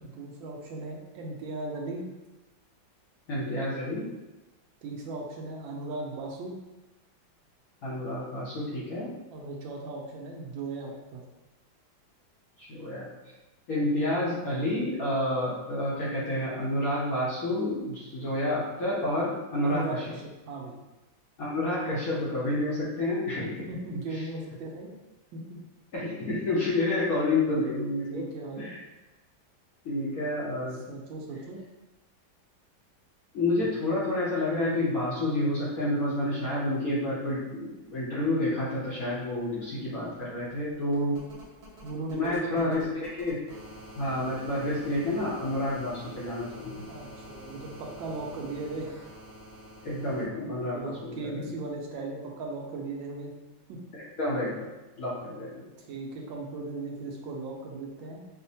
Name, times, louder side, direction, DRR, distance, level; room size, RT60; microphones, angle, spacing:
voice 1, 0.0-2.1 4.8-6.6 9.3-11.2 19.6-20.8 23.7-24.9 25.3-25.6 28.1-28.7 30.9-31.6 41.8-42.8 46.9-48.9 50.7-53.3 53.7-53.8 55.9-58.2, right 2 dB, 80° right, 0 dB, 1.4 m, -37 dB
voice 2, 3.3-4.1 7.8-9.1 12.7-13.1 13.7-19.9 21.4-23.6 23.9-24.0 25.9-28.2 28.6-28.8 29.8-30.8 33.3-41.2 42.1-43.4 44.0-46.8 49.8-51.4 53.9-54.6 55.0-55.6, left 1 dB, 60° left, -7 dB, 1.0 m, -29 dB
sound 1, 39.8-50.2 51.7-51.8, equal, 50° right, 0.7 m, -48 dB
5.0 x 2.1 x 2.7 m, 1.1 s
omnidirectional pair, 2.1 m